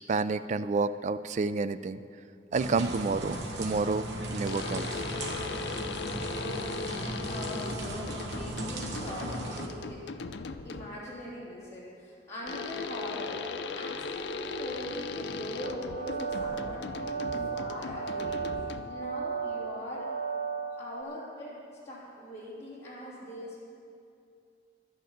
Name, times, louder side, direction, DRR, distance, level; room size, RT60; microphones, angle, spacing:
voice 1, 0.1-2.0 2.5-4.9, right 4 dB, 40° right, 14 dB, 0.3 m, -29 dB
sound 1, 2.5-9.7, right 1 dB, 90° right, 1.3 m, -37 dB
sound 2, 4.5-11.1 12.5-19.1, left 4 dB, 80° left, 0.5 m, -38 dB
voice 2, 6.2-10.0 10.6-13.4 13.7-18.5 18.9-20.1 20.8-23.7, equal, 15° left, -9 dB, 3.1 m, -41 dB
sound 3, 15.6-21.0, right 5 dB, 60° right, 0.8 m, -35 dB
11.5 x 9.4 x 7.2 m, 2.5 s
head